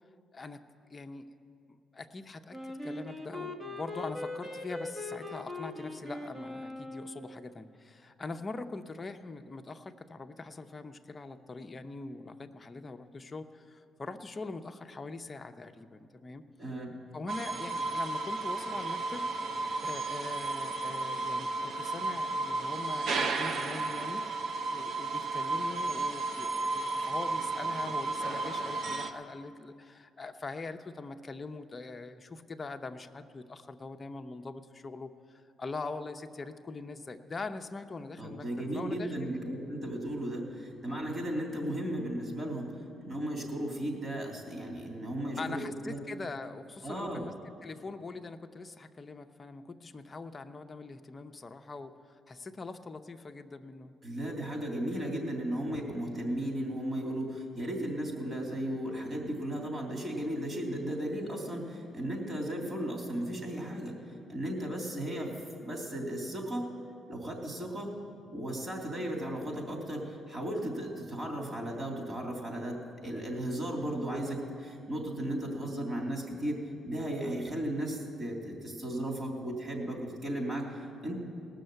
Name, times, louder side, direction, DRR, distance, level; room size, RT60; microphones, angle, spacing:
voice 1, 0.3-1.3 1.7-16.4 17.1-19.2 19.8-24.2 24.7-38.5 38.7-39.3 45.4-47.3 47.6-53.9, left 3 dB, 30° left, 6 dB, 0.7 m, -42 dB
Wind instrument woodwind instrument, 2.5-7.2, left 2 dB, 25° right, 1.2 m, -40 dB
voice 2, 16.6-16.9 38.2-42.7 43.0-46.0 46.8-47.2 54.0-63.9 64.3-65.3 65.6-66.7 67.1-67.9 68.3-72.8 73.0-81.1, right 1 dB, 40° right, 0 dB, 3.2 m, -35 dB
sound 1, 17.3-29.1, right 3 dB, 65° right, 0.8 m, -33 dB
19.0 x 6.4 x 7.9 m, 2.5 s
cardioid pair, 90°, 0 cm